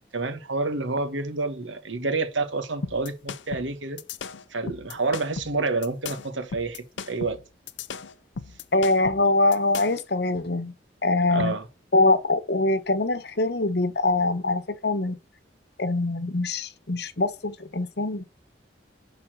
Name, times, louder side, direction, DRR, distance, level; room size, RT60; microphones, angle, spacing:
voice 1, 0.1-4.0 4.5-7.4 11.3-11.6, right 3 dB, 85° right, 1.7 m, -28 dB
sound 1, 2.8-10.1, left 5 dB, 75° left, 0.6 m, -36 dB
voice 2, 8.7-10.7 11.0-11.5 11.9-15.2 15.8-18.2, left 2 dB, 55° left, 1.0 m, -23 dB
11.0 x 4.3 x 6.3 m
head